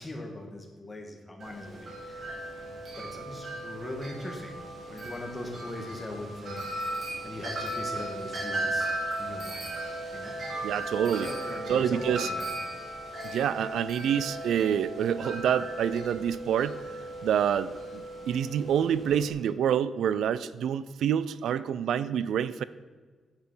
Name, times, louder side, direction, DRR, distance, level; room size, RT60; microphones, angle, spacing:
voice 1, 0.0-4.5 4.9-6.7 7.2-9.7 10.1-10.3 11.0-12.5, left 1 dB, 15° left, 2 dB, 1.4 m, -40 dB
Wind chime, 1.4-19.3, right 1 dB, 45° right, 2.3 m, -36 dB
voice 2, 10.6-11.3 11.7-12.3 13.2-16.8 17.2-22.6, right 9 dB, 80° right, 16 dB, 0.3 m, -27 dB
9.6 x 6.8 x 5.4 m, 1.4 s
wide cardioid pair, 175°, 0 cm